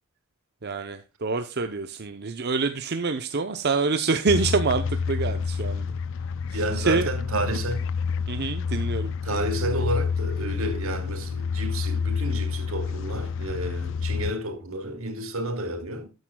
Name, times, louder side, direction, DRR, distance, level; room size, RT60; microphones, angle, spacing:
voice 1, 0.6-5.9 6.5-7.1 8.3-9.1, right 4 dB, 50° right, 0.8 m, -26 dB
sound 1, 4.3-14.3, left 5 dB, 65° left, 0.4 m, -28 dB
voice 2, 6.5-7.8 9.2-16.1, right 1 dB, 80° right, 2.5 m, -31 dB
13.5 x 9.7 x 2.3 m
head